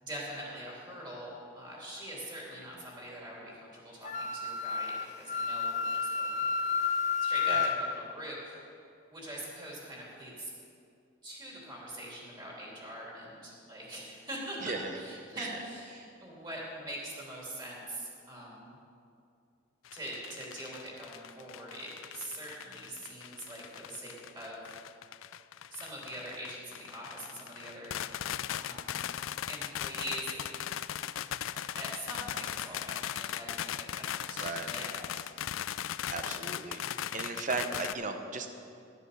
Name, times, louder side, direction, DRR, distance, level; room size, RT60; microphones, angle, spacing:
voice 1, 0.0-8.6 9.1-10.5 11.2-18.8 19.9-24.8 25.7-28.0 28.6-29.1 29.5-30.6 31.8-35.2, right 1 dB, 25° right, -4 dB, 3.1 m, -43 dB
Wind instrument woodwind instrument, 4.0-7.8, left 5 dB, 40° left, 0.6 m, -31 dB
voice 2, 14.6-15.0 15.3-15.5 16.0-16.1 29.0-29.2 34.4-34.7 36.1-36.8 37.1-38.5, right 3 dB, 40° right, 6 dB, 0.9 m, -36 dB
sound 1, 19.8-37.9, left 10 dB, 85° left, 0.4 m, -38 dB
12.5 x 8.1 x 6.7 m, 2.5 s
head